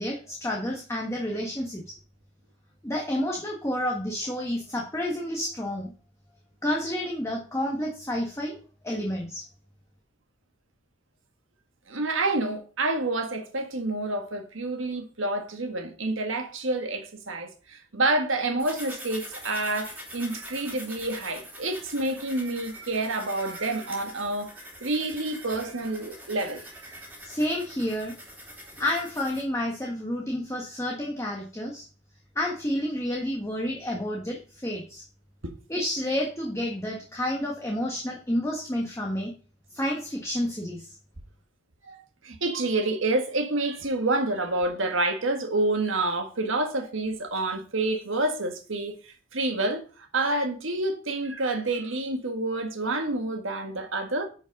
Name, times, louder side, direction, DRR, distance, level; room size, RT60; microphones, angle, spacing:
voice 1, 0.0-2.0 2.8-5.9 6.6-8.6 8.8-9.5 27.2-28.1 28.8-31.8 32.3-35.0 35.7-39.3 39.7-41.0, left 1 dB, 15° left, 1.5 m, -30 dB
voice 2, 11.9-27.1 41.8-54.3, right 2 dB, 70° right, 1.7 m, -28 dB
sound 1, 18.6-29.4, equal, 10° right, 3.0 m, -44 dB
11.0 x 5.3 x 5.4 m
head